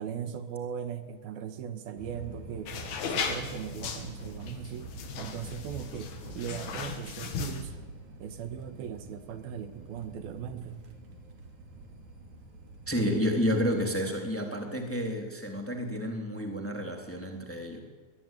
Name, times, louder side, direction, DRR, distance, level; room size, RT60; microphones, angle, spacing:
voice 1, 0.0-2.7 3.1-4.9 5.2-7.7 8.2-10.8, right 8 dB, 80° right, 9 dB, 3.2 m, -38 dB
sound 1, 2.0-13.5, right 2 dB, 55° right, 3.8 m, -47 dB
sound 2, 2.7-7.6, left 6 dB, 80° left, 4.3 m, -37 dB
voice 2, 12.9-17.8, equal, 5° left, 2 dB, 2.8 m, -30 dB
22.5 x 21.5 x 9.2 m, 1.3 s
omnidirectional pair, 4.4 m